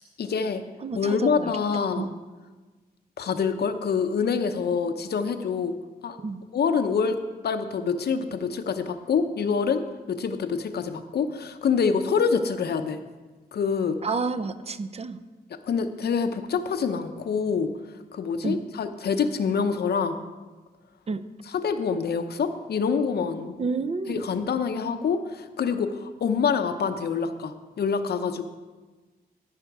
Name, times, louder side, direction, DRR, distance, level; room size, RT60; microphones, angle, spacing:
voice 1, 0.2-0.6 1.0-2.1 3.2-5.8 6.0-6.2 6.5-7.2 7.4-13.0 13.5-14.0 15.7-17.7 18.1-20.2 21.5-23.6 24.1-28.5, left 6 dB, 85° left, 8 dB, 0.7 m, -26 dB
voice 2, 0.8-1.5 2.0-2.1 6.2-6.4 14.0-15.2 18.4-18.6 21.1-21.2 23.6-24.2, right 4 dB, 40° right, 11 dB, 0.5 m, -30 dB
14.0 x 5.8 x 4.7 m, 1.3 s
wide cardioid pair, 100°, 16 cm